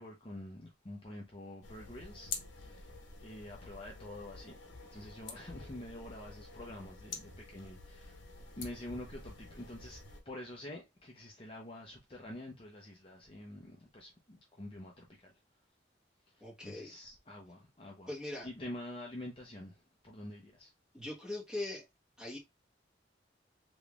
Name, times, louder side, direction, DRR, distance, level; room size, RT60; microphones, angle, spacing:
voice 1, 0.0-2.9 3.2-4.5 4.9-8.2 8.5-15.3 16.3-18.1 18.4-20.7, left 1 dB, 30° left, 0.6 m, -47 dB
sound 1, 1.6-10.2, left 4 dB, 85° left, 0.9 m, -48 dB
voice 2, 16.4-17.0 18.1-18.5 20.9-21.8 22.2-22.4, left 2 dB, 5° right, 1.4 m, -41 dB
3.5 x 3.0 x 2.3 m
head